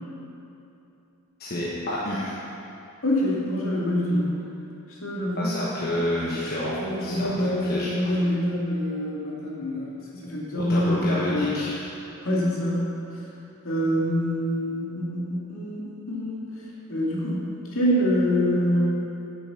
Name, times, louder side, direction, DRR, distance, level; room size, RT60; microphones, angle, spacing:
voice 1, 1.4-2.5 5.4-8.2 10.6-11.9, left 1 dB, 45° left, -7 dB, 1.2 m, -29 dB
voice 2, 3.0-4.3 4.9-5.5 6.8-11.7 12.2-12.9 13.1-13.2 13.6-18.8, equal, 65° left, -5 dB, 2.6 m, -26 dB
9.6 x 7.9 x 5.8 m, 2.8 s
head